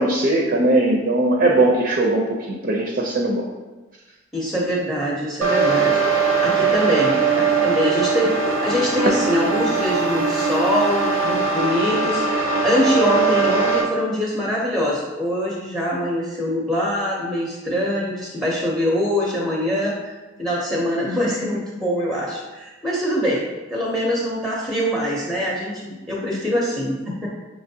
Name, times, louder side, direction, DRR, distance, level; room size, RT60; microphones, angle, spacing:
voice 1, 0.0-3.4, right 2 dB, 50° right, 0 dB, 0.5 m, -19 dB
voice 2, 4.3-20.1 20.4-23.4 23.7-27.3, equal, ahead, -4 dB, 0.5 m, -23 dB
sound 1, 5.4-13.8, right 4 dB, 90° right, 0.7 m, -20 dB
6.0 x 3.0 x 2.7 m, 1.2 s
head